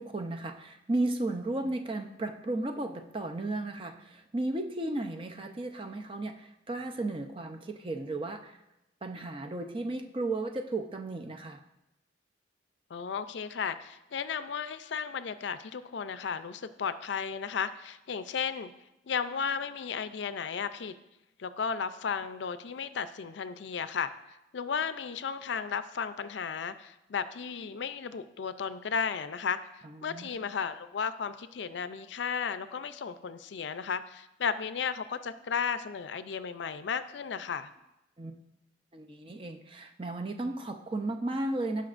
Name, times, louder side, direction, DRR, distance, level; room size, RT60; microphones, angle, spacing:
voice 1, 0.0-8.6 9.0-11.6 29.8-30.3 38.2-38.4 38.9-41.9, right 2 dB, 30° right, 5 dB, 0.6 m, -34 dB
voice 2, 12.9-18.7 19.1-20.9 21.4-24.1 24.5-29.6 30.0-37.7, left 6 dB, 70° left, 12 dB, 0.4 m, -34 dB
16.5 x 5.7 x 2.5 m, 0.92 s
head